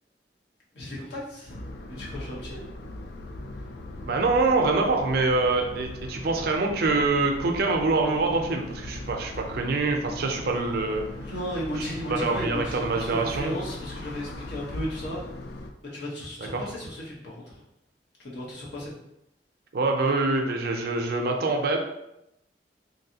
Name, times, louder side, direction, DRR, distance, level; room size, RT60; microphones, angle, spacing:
voice 1, 0.7-2.6 3.5-3.6 11.2-15.3 15.8-17.6 18.2-18.9, equal, 80° left, -5 dB, 1.0 m, -35 dB
sound 1, 1.5-15.7, left 2 dB, 65° left, 0.4 m, -39 dB
voice 2, 4.1-11.1 12.1-13.5 16.5-16.6 19.7-21.8, right 3 dB, 60° right, 3 dB, 0.5 m, -25 dB
3.2 x 2.6 x 2.8 m, 0.84 s
head